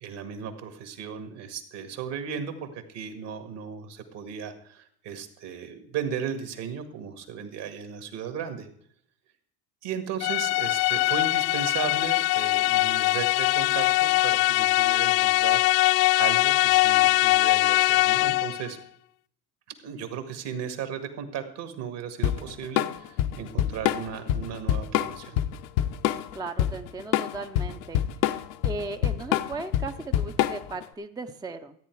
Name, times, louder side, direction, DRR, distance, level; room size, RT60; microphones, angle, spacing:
voice 1, 0.0-8.7 9.8-15.7 16.2-18.8 19.8-25.4, right 7 dB, 55° right, 8 dB, 2.1 m, -36 dB
sound 1, 10.2-18.7, left 19 dB, 50° left, 0.5 m, -22 dB
Drum kit / Drum, 22.2-30.8, left 12 dB, 70° left, 0.9 m, -26 dB
voice 2, 26.3-28.0 28.6-31.7, right 3 dB, 10° right, 7 dB, 0.6 m, -36 dB
13.5 x 8.8 x 4.7 m, 0.65 s
supercardioid pair, 90°, 48 cm